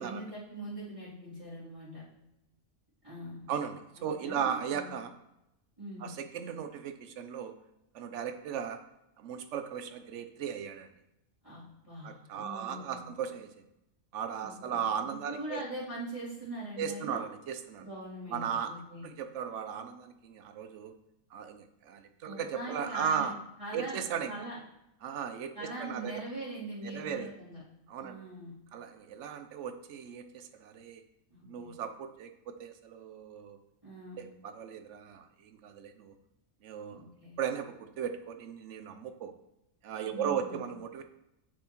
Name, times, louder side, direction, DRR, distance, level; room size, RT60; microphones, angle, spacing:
voice 1, 0.0-2.0 3.0-3.4 4.0-4.9 5.8-6.1 11.4-13.1 14.4-17.2 17.8-19.0 22.2-23.3 23.6-24.5 25.5-27.6 28.0-28.5 31.3-31.7 33.8-34.3 36.9-37.4 40.1-40.7, right 1 dB, 25° right, -13 dB, 3.0 m, -42 dB
voice 2, 3.5-5.1 6.0-7.5 7.9-8.8 9.2-10.9 12.0-13.6 14.1-15.6 16.8-17.8 18.3-18.7 19.0-20.9 21.3-23.3 23.7-24.4 25.0-26.2 26.8-27.3 27.9-28.2 28.7-31.0 31.5-33.6 34.2-36.1 36.6-37.0 37.4-39.3 39.8-41.0, right 8 dB, 70° right, 8 dB, 0.9 m, -37 dB
7.8 x 6.9 x 3.0 m, 0.86 s
omnidirectional pair, 1.4 m